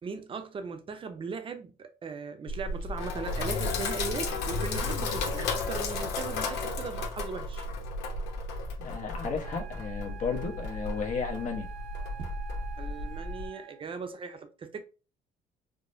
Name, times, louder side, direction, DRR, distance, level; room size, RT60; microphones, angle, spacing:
voice 1, 0.0-7.7 12.2-12.3 12.8-14.8, right 5 dB, 30° right, 0.6 m, -38 dB
Sink (filling or washing), 2.5-13.5, left 3 dB, 85° left, 0.8 m, -34 dB
voice 2, 8.8-11.7, left 5 dB, 50° left, 0.9 m, -33 dB
Wind instrument woodwind instrument, 9.4-14.0, right 7 dB, 65° right, 0.6 m, -47 dB
4.9 x 2.1 x 2.6 m
cardioid pair, 110°, 17 cm